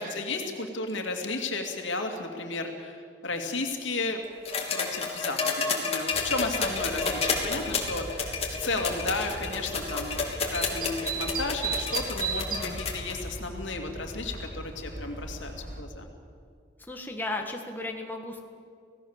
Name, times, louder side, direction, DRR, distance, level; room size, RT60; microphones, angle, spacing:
voice 1, 0.0-4.2 4.7-16.1, left 3 dB, 80° left, 3 dB, 2.6 m, -33 dB
sound 1, 4.5-13.1 14.3-14.4, left 5 dB, 35° left, 3.2 m, -30 dB
sound 2, 6.1-15.8, right 3 dB, 45° right, 2.3 m, -37 dB
voice 2, 16.8-18.5, left 2 dB, 10° left, 2 dB, 1.7 m, -35 dB
27.5 x 17.5 x 7.4 m, 2.3 s
head